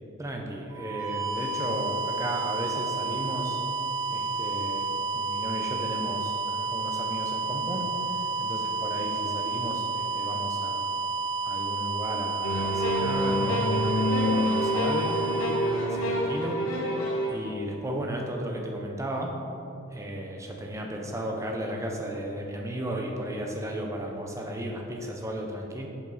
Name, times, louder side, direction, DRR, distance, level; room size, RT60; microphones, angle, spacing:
voice 1, 0.2-3.6 4.1-10.8 11.4-13.8 14.1-15.2 15.7-16.6 17.3-19.3 19.9-25.9, right 1 dB, 15° right, 0 dB, 0.6 m, -35 dB
sound 1, 0.7-16.5, right 3 dB, 60° right, 1.1 m, -31 dB
sound 2, 12.4-17.4, equal, 65° left, 1.0 m, -27 dB
6.9 x 5.1 x 4.0 m, 2.9 s
head